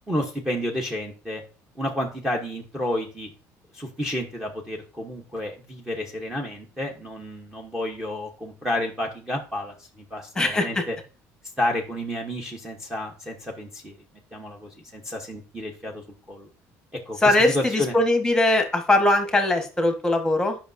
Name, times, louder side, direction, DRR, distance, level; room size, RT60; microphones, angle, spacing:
voice 1, 0.1-1.4 1.7-3.3 3.7-11.0 11.6-14.0 14.3-16.5 17.1-18.0, left 1 dB, 10° right, -2 dB, 1.0 m, -31 dB
voice 2, 10.4-10.8 17.2-20.6, left 2 dB, 10° left, 5 dB, 1.4 m, -21 dB
10.0 x 5.7 x 2.6 m, 0.35 s
cardioid pair, 145°, 6 cm